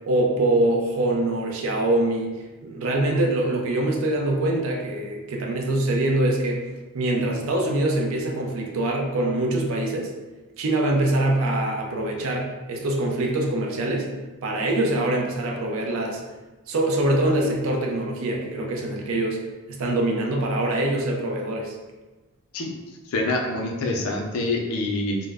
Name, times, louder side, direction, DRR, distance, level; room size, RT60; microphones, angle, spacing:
voice 1, 0.1-2.3 2.6-6.6 6.9-10.1 10.6-14.1 14.4-16.2 16.7-19.4 19.7-21.8, right 1 dB, 60° right, 0 dB, 0.4 m, -24 dB
voice 2, 23.1-25.3, left 2 dB, 70° left, 2 dB, 0.4 m, -26 dB
2.1 x 2.0 x 3.4 m, 1.2 s
head